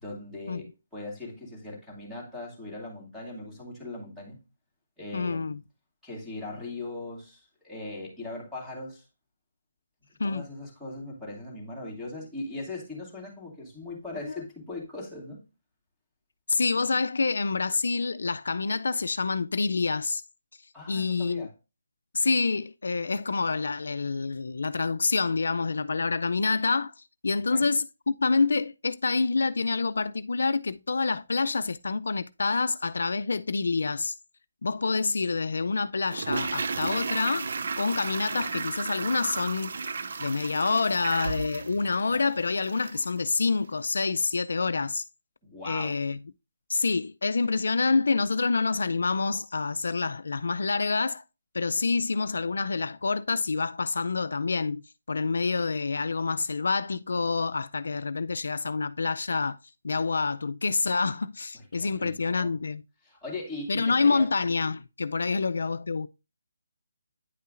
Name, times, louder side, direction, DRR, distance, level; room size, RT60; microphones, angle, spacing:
voice 1, 0.0-4.4 5.0-5.6 6.0-9.1 10.2-15.4 20.7-21.5 27.5-27.6 45.4-46.0 61.5-62.5 63.0-64.3, left 2 dB, ahead, 2.3 m, -39 dB
voice 2, 5.1-5.6 10.2-10.5 14.2-14.4 16.5-20.2 20.9-21.5 22.1-34.1 34.6-39.8 40.2-45.0 45.6-46.2 46.7-51.2 51.5-59.6 59.8-62.8 63.7-66.1, left 4 dB, 70° left, 0.4 m, -27 dB
Toilet flush, 36.0-43.1 43.4-43.5, right 4 dB, 60° right, 0.5 m, -34 dB
9.7 x 5.4 x 2.5 m
figure-of-eight pair, 160°, 0 cm